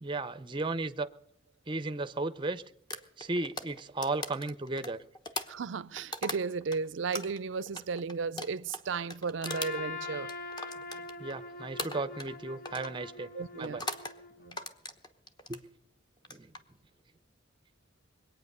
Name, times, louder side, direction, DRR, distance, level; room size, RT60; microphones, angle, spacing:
voice 1, 0.0-1.1 1.7-2.6 3.2-5.0 11.2-13.3 13.6-13.8 15.5-15.6 16.3-16.5, right 2 dB, 25° right, 0.6 m, -35 dB
sound 1, 2.9-6.8 7.1-11.4 11.8-12.4 12.7-13.0 13.6-14.2 14.5-15.6 16.2-16.6, left 1 dB, 20° left, 1.0 m, -40 dB
voice 2, 5.5-10.3 13.3-13.9 14.4-14.6, right 5 dB, 70° right, 0.5 m, -34 dB
Trumpet, 9.4-14.5, left 3 dB, 45° left, 0.7 m, -43 dB
21.5 x 9.0 x 6.7 m
head